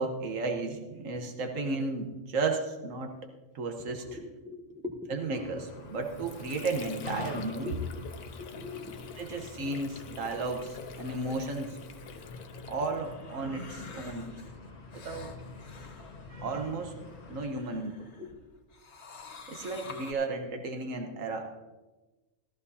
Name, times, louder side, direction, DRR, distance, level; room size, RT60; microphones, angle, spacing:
voice 1, 0.0-3.1 3.5-4.0 5.1-7.8 9.2-11.8 12.7-14.3 14.9-15.4 16.3-16.9 17.3-18.0 19.5-21.6, right 3 dB, 75° right, 4 dB, 1.5 m, -33 dB
voice 2, 3.8-5.2 7.6-8.0 8.3-9.2 18.2-18.4, left 4 dB, 5° right, 0 dB, 0.8 m, -42 dB
sound 1, 5.3-17.4, left 3 dB, 35° left, 1.0 m, -46 dB
Water / Sink (filling or washing), 5.7-13.4, left 8 dB, 85° left, 1.2 m, -48 dB
sound 2, 12.0-18.3 18.7-20.1, left 3 dB, 55° left, 1.7 m, -50 dB
14.5 x 13.5 x 2.8 m, 1.2 s
omnidirectional pair, 1.4 m